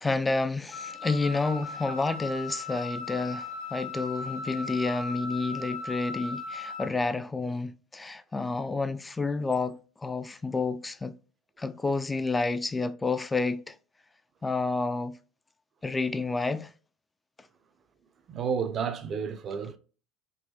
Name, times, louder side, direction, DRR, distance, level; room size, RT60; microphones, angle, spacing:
voice 1, 0.0-11.2 11.6-13.7 14.4-15.2 15.8-16.7, left 3 dB, 15° left, 0.3 m, -30 dB
Wind instrument woodwind instrument, 0.7-6.9, left 3 dB, 85° left, 1.0 m, -38 dB
voice 2, 18.3-19.8, right 6 dB, 45° right, 0.5 m, -31 dB
3.9 x 2.2 x 2.8 m
hypercardioid pair, 75°, 0 cm